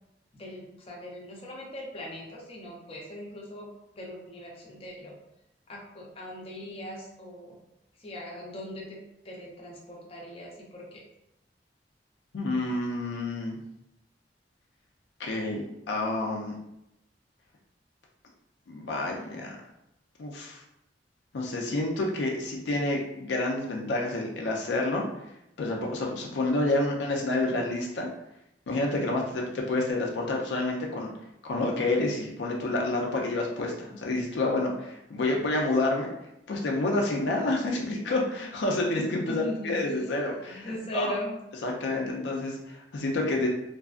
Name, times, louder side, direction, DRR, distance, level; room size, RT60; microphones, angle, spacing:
voice 1, 0.3-3.7 3.9-5.2 5.7-7.6 8.0-9.0 9.2-11.0 35.2-35.4 39.3-39.8 40.6-41.4, equal, 35° left, -3 dB, 0.6 m, -40 dB
voice 2, 12.3-13.6 15.2-16.5 18.7-19.5 20.2-20.6 21.3-25.0 25.6-28.1 28.7-31.1 31.4-36.1 36.5-41.1 41.6-43.5, left 2 dB, 80° left, -1 dB, 0.4 m, -29 dB
2.6 x 2.3 x 2.4 m, 0.84 s
head